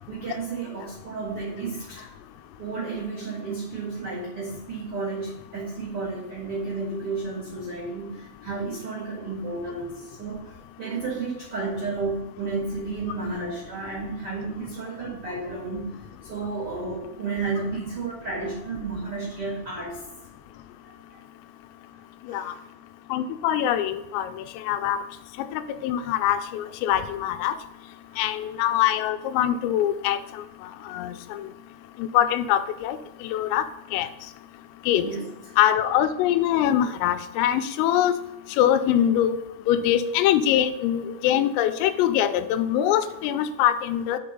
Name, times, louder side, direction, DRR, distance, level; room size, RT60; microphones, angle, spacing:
voice 1, 0.1-2.1 2.6-16.0 16.3-20.0 20.9-21.0 22.3-22.6 35.0-35.2, right 3 dB, 60° right, -5 dB, 1.4 m, -32 dB
voice 2, 23.1-24.3 24.7-25.0 25.4-27.5 28.2-30.2 30.9-31.5 32.0-33.6 33.9-34.1 34.9-35.1 35.6-38.2 38.6-39.4 39.7-44.2, left 11 dB, 85° left, 10 dB, 3.3 m, -23 dB
6.7 x 5.4 x 5.2 m, 0.96 s
omnidirectional pair, 5.9 m